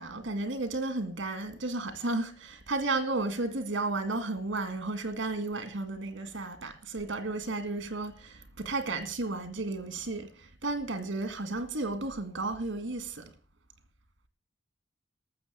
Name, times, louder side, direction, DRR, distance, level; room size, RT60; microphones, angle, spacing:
voice 1, 0.0-13.3, right 2 dB, 85° right, 2.1 m, -33 dB
13.0 x 7.3 x 8.6 m
head